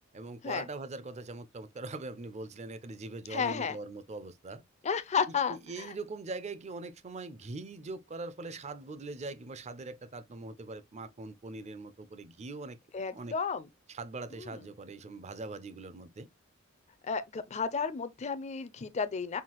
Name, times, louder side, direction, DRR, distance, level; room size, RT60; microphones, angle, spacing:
voice 1, 0.1-4.6 5.5-12.8 13.1-13.4 13.9-16.3, right 3 dB, 30° right, 0.5 m, -42 dB
voice 2, 3.3-3.8 4.8-5.9 12.9-13.7 14.3-14.6 17.0-19.4, left 6 dB, 30° left, 0.4 m, -32 dB
5.7 x 2.4 x 2.9 m
head